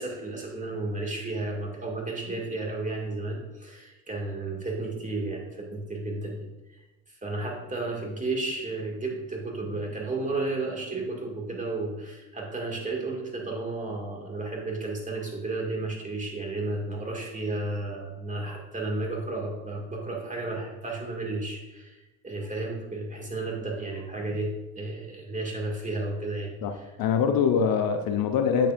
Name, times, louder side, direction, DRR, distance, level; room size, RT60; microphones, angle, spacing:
voice 1, 0.0-6.8 7.1-22.0 22.2-26.9, right 2 dB, 20° right, -1 dB, 2.2 m, -33 dB
voice 2, 26.6-28.7, left 6 dB, 55° left, 6 dB, 0.7 m, -24 dB
8.2 x 6.8 x 2.6 m, 1.0 s
hypercardioid pair, 70°, 42 cm